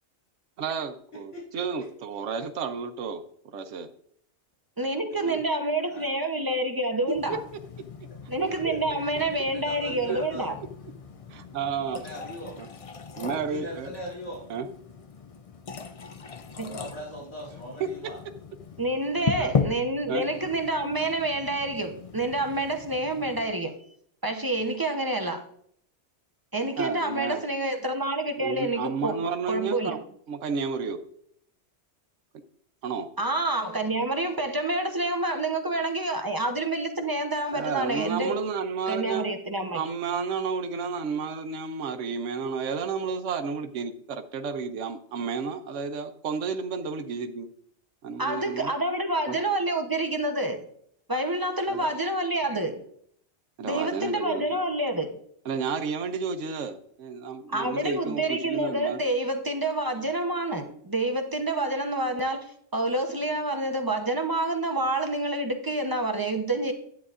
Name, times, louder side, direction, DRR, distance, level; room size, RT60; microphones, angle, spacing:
voice 1, 0.6-3.2 3.5-3.9 5.2-5.4 7.3-7.4 8.4-8.5 11.3-12.0 12.6-12.7 13.2-13.9 14.5-14.7 17.8-17.9 19.4-19.5 20.1-20.2 26.8-27.4 28.4-30.0 30.3-31.0 32.8-33.1 37.5-39.3 39.7-47.5 48.0-48.7 49.3-49.4 51.7-51.9 53.6-54.4 55.5-59.0, right 5 dB, 90° right, 1.0 m, -31 dB
voice 2, 1.1-1.9 5.9-6.1 8.5-8.8 9.2-10.5 11.7-12.6 13.3-14.5 16.4-18.2, equal, 75° left, 2.6 m, -41 dB
voice 3, 4.8-7.4 8.3-10.5 16.6-16.8 18.8-23.7 24.2-25.4 26.5-29.2 29.5-30.0 33.2-38.3 38.9-39.8 48.2-50.6 51.1-52.8 53.6-55.1 57.5-66.7, right 2 dB, 20° right, 0.7 m, -28 dB
sound 1, 7.2-23.5, left 5 dB, 45° left, 0.5 m, -37 dB
10.5 x 8.6 x 2.5 m
omnidirectional pair, 1.2 m